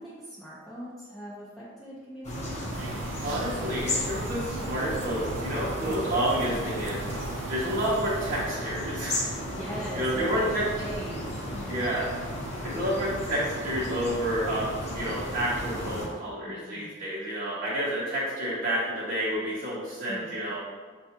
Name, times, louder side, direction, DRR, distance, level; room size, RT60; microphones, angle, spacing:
voice 1, 0.0-2.8 5.9-6.1 7.9-8.0 9.5-10.4 10.8-11.9 16.5-17.0 20.1-20.3, right 1 dB, ahead, -10 dB, 0.6 m, -41 dB
sound 1, 2.2-16.1, left 1 dB, 35° left, 0.9 m, -34 dB
sound 2, 2.7-8.5, right 4 dB, 75° right, 0.3 m, -39 dB
voice 2, 3.2-7.2 7.5-9.3 9.9-10.7 11.7-12.1 12.6-20.6, right 1 dB, 45° right, -8 dB, 0.8 m, -29 dB
5.3 x 2.3 x 2.8 m, 1.5 s
head